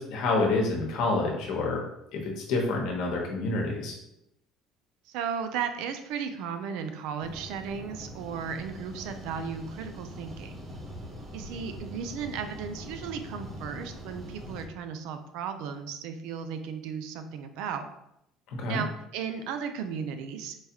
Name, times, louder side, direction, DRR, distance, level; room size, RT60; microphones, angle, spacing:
voice 1, 0.0-1.8 2.1-3.9 18.6-18.8, left 3 dB, 70° left, 0 dB, 0.9 m, -28 dB
voice 2, 5.0-10.5 11.3-17.9 18.7-20.6, right 7 dB, 80° right, 8 dB, 0.4 m, -35 dB
sound 1, 7.2-14.7, equal, 25° right, 0.8 m, -42 dB
4.5 x 2.3 x 2.8 m, 0.80 s
supercardioid pair, 100°, 0 cm